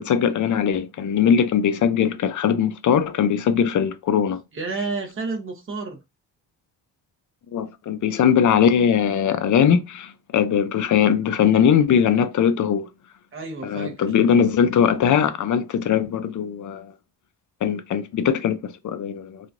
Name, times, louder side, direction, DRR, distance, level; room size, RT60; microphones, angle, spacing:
voice 1, 0.0-4.4 7.5-12.9 13.6-16.9 17.6-19.5, left 8 dB, 45° left, 0.5 m, -20 dB
voice 2, 4.5-6.0 13.3-14.1, right 3 dB, 30° right, 0.9 m, -30 dB
2.9 x 2.4 x 2.4 m
cardioid pair, 85°, 43 cm